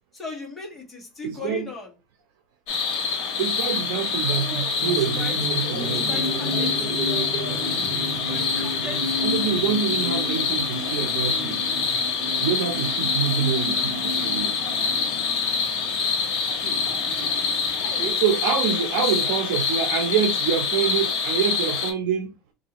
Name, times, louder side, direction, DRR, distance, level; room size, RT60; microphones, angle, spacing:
voice 1, 0.1-1.9 4.2-4.8 5.2-5.3 6.1-7.0 8.3-9.2 17.7-18.1 19.2-19.4, left 4 dB, 10° left, 1.3 m, -38 dB
voice 2, 1.2-1.7 3.4-6.1 9.2-11.6 12.4-14.5 18.2-22.3, right 7 dB, 80° right, 0.7 m, -26 dB
sound 1, 2.7-21.9, left 5 dB, 60° left, 1.2 m, -26 dB
sound 2, 4.8-18.1, equal, 25° right, 1.7 m, -32 dB
3.9 x 2.6 x 3.0 m
cardioid pair, 155°, 0 cm